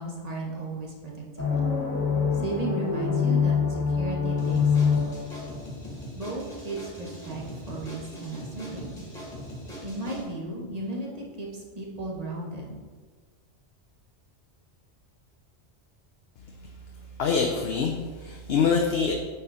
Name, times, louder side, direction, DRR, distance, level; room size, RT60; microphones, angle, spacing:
voice 1, 0.0-1.7 2.3-5.2 6.1-9.2 9.8-12.7, right 2 dB, 35° right, -2 dB, 1.5 m, -35 dB
sound 1, 1.4-5.7, left 6 dB, 15° left, 1.5 m, -25 dB
sound 2, 4.4-10.2, equal, 35° left, 2.6 m, -41 dB
voice 2, 17.2-19.1, left 5 dB, 65° left, 2 dB, 0.9 m, -25 dB
8.6 x 5.6 x 4.1 m, 1.5 s
omnidirectional pair, 1.2 m